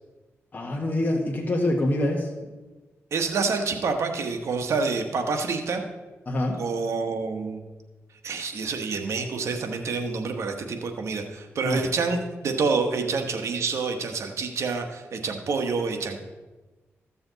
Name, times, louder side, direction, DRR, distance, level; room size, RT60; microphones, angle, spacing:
voice 1, 0.5-2.3 6.3-6.6 11.6-11.8, left 1 dB, 35° left, 0 dB, 1.5 m, -25 dB
voice 2, 3.1-5.8 6.6-7.6 8.2-16.2, right 4 dB, 70° right, 5 dB, 1.2 m, -27 dB
14.0 x 7.0 x 4.0 m, 1.2 s
cardioid pair, 75°, 5 cm